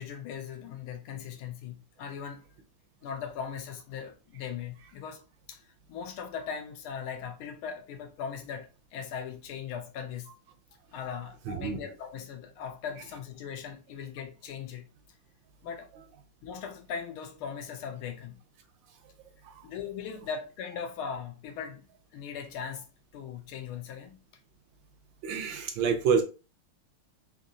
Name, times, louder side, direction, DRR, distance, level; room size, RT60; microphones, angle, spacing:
voice 1, 0.0-2.5 3.0-5.2 5.5-5.6 5.9-10.3 10.9-14.9 15.6-15.9 16.4-18.4 19.6-21.9 22.1-24.2, left 7 dB, 85° left, 1.6 m, -39 dB
voice 2, 11.4-11.8 19.4-19.5 25.2-26.2, right 6 dB, 75° right, 1.2 m, -27 dB
3.8 x 2.7 x 2.6 m
omnidirectional pair, 2.3 m